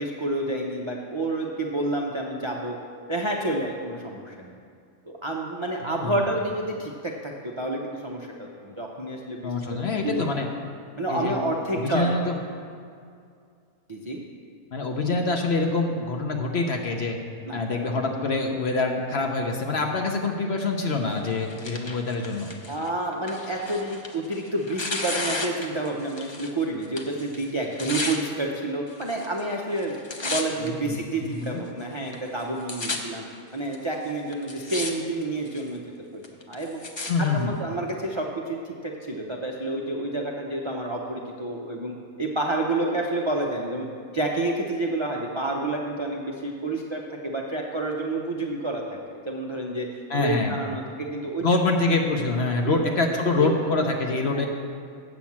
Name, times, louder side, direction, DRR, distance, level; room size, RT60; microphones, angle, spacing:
voice 1, 0.0-2.8 3.1-4.6 5.0-9.8 10.0-10.4 11.0-12.3 13.9-14.2 17.4-17.6 17.9-18.0 22.7-33.2 33.5-35.8 36.1-36.8 37.3-43.9 44.1-48.8 49.1-49.9 50.1-51.4 52.6-53.0 53.4-53.5 54.3-54.4, right 2 dB, 40° right, -1 dB, 0.4 m, -29 dB
voice 2, 5.8-6.3 9.4-10.5 11.1-11.4 11.7-12.4 14.7-17.2 17.5-22.5 30.6-31.6 37.1-37.5 50.1-50.6 51.4-54.5, left 3 dB, 55° left, 2 dB, 0.8 m, -25 dB
Tearing, 21.1-26.6 26.8-28.2 28.9-29.4 29.7-30.7 31.3-31.4 32.1-32.2 32.4-33.0 33.7-33.8 34.3-34.9 35.2-35.7 36.2-37.1 37.9-38.0, left 2 dB, 40° left, 0.4 m, -33 dB
8.0 x 5.9 x 7.2 m, 2.3 s
omnidirectional pair, 1.6 m